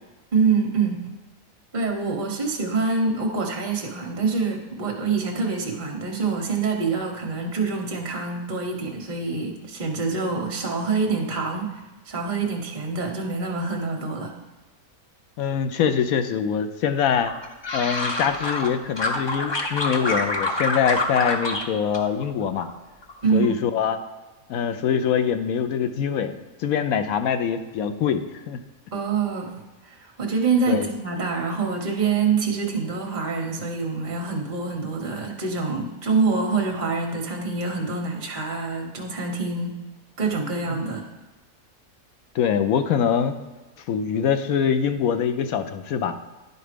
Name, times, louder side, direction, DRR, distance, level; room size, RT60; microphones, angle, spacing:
voice 1, 0.3-1.0 1.7-11.7 12.1-14.3 23.2-23.6 28.9-29.5 29.8-39.8 40.2-41.1, right 4 dB, 35° right, 1 dB, 1.0 m, -25 dB
voice 2, 15.4-17.3 17.7-22.7 23.3-24.0 24.5-28.6 30.7-30.9 40.7-40.8 42.3-43.4 43.9-46.1, left 7 dB, 75° left, 9 dB, 1.1 m, -24 dB
sound 1, 17.2-18.7 19.0-21.6 21.9-22.7 23.0-23.5, left 2 dB, 35° left, 0.4 m, -27 dB
10.5 x 4.1 x 5.0 m, 1.2 s
omnidirectional pair, 1.5 m